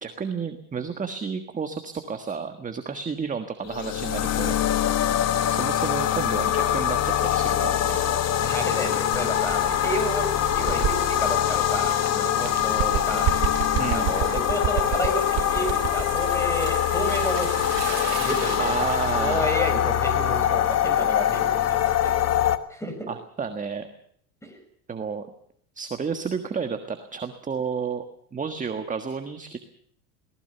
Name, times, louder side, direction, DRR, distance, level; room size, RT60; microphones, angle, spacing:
voice 1, 0.0-4.5 5.5-8.1 13.8-14.1 18.6-19.5 23.1-23.9 24.9-25.3 25.7-28.1 28.3-29.6, right 6 dB, 15° right, 7 dB, 1.5 m, -31 dB
sound 1, 3.6-22.6, left 11 dB, 35° left, 1.3 m, -24 dB
sound 2, 7.0-18.9, right 15 dB, 85° right, 3.0 m, -40 dB
voice 2, 8.4-13.3 13.9-18.8 19.1-22.2 22.7-23.1 24.4-24.6, equal, 5° left, 7 dB, 6.3 m, -31 dB
Bird, 8.4-12.0 12.4-16.2, right 14 dB, 50° right, 1.8 m, -31 dB
22.5 x 19.0 x 6.9 m, 0.63 s
supercardioid pair, 130°, 47 cm